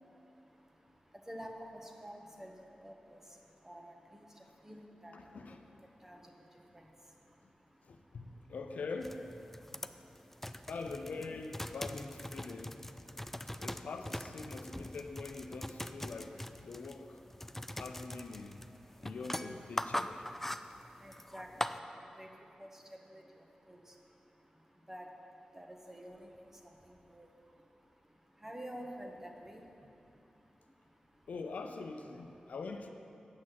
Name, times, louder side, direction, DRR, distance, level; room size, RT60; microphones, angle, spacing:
voice 1, 1.3-2.5 2.8-2.9 3.6-3.9 4.6-5.1 6.0-6.2 21.0-21.5 22.2-22.3 22.6-22.7 23.1-23.2 23.7-23.8 24.9-25.0 25.5-26.3 27.1-27.3 28.4-29.6, equal, 15° right, 1 dB, 1.4 m, -47 dB
voice 2, 5.1-5.6 7.8-9.2 10.7-12.8 13.6-17.2 17.7-18.6 19.0-20.2 31.3-32.9, left 4 dB, 80° left, 5 dB, 0.6 m, -44 dB
sound 1, 9.0-21.8, left 1 dB, 10° left, 0.4 m, -42 dB
8.7 x 6.2 x 7.6 m, 2.7 s
cardioid pair, 45°, 3 cm